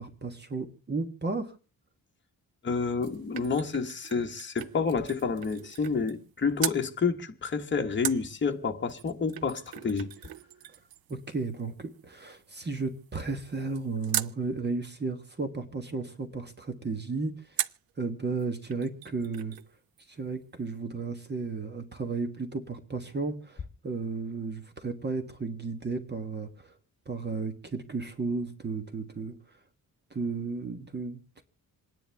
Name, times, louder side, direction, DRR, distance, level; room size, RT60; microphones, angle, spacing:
voice 1, 0.0-1.6 11.1-17.6 18.0-19.6 20.1-26.7 27.1-29.4 30.1-31.4, right 3 dB, 30° right, 1.4 m, -34 dB
voice 2, 2.6-10.1, left 5 dB, 30° left, 1.3 m, -29 dB
sound 1, 2.7-6.3 6.6-6.9 8.0-14.4 17.6-17.9 18.4-18.5 18.7-19.7 20.0-20.1, right 12 dB, 75° right, 0.6 m, -39 dB
27.5 x 10.0 x 3.4 m
wide cardioid pair, 160°, 35 cm